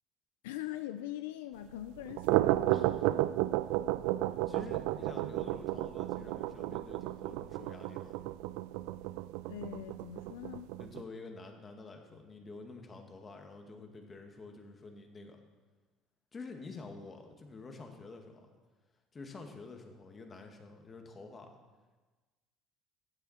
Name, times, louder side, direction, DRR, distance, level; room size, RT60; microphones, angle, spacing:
voice 1, 0.4-3.1 9.5-10.7, left 13 dB, 90° left, 10 dB, 0.4 m, -42 dB
sound 1, 2.0-11.0, right 16 dB, 80° right, 0.3 m, -33 dB
voice 2, 2.7-3.1 4.5-8.2 10.8-15.4 16.3-18.5 19.1-21.5, left 3 dB, 35° left, 4 dB, 2.1 m, -49 dB
15.0 x 9.0 x 4.4 m, 1.3 s
supercardioid pair, 75°, 0 cm